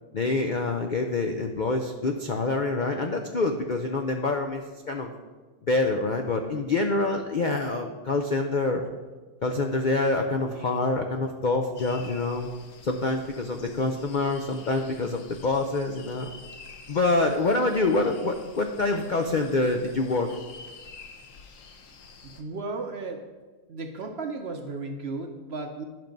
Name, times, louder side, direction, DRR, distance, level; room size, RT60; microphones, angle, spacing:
voice 1, 0.1-5.1 5.7-8.8 9.4-12.5 12.8-16.3 16.9-20.3, left 3 dB, 75° left, 4 dB, 0.4 m, -26 dB
sound 1, 11.8-22.4, left 4 dB, 60° left, 1.2 m, -48 dB
voice 2, 22.2-23.3 23.7-25.8, right 3 dB, 50° right, 5 dB, 0.8 m, -35 dB
11.0 x 6.0 x 5.2 m, 1.3 s
omnidirectional pair, 1.8 m